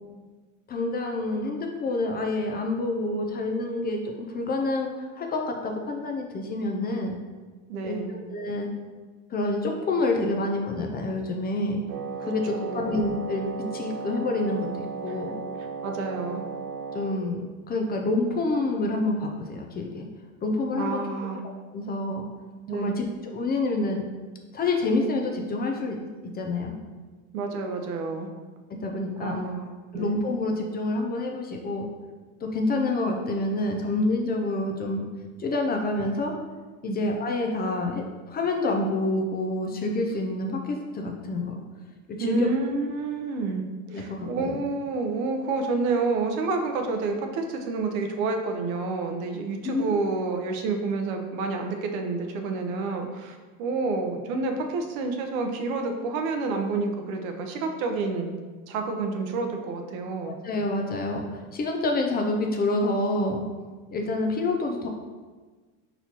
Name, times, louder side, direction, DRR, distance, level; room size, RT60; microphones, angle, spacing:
voice 1, 0.7-7.2 7.8-8.7 9.3-11.8 12.2-15.4 16.9-20.1 20.4-21.0 21.7-22.3 22.7-24.1 24.5-26.0 26.3-26.8 28.8-29.4 29.9-31.9 32.4-35.1 35.4-36.3 36.8-41.6 42.2-42.5 43.9-44.6 49.6-49.9 60.2-63.4 63.9-64.9, left 2 dB, 25° left, 2 dB, 0.4 m, -27 dB
voice 2, 7.7-8.1 12.2-12.9 15.1-15.2 15.8-16.4 20.8-21.4 22.7-22.9 27.3-28.3 29.2-30.1 36.9-37.0 42.2-43.6 43.9-58.3 58.7-60.4, right 3 dB, 85° right, 4 dB, 0.8 m, -29 dB
Wind instrument woodwind instrument, 11.9-17.2, right 5 dB, 45° right, 0.5 m, -35 dB
4.4 x 4.1 x 2.8 m, 1.4 s
supercardioid pair, 120°, 41 cm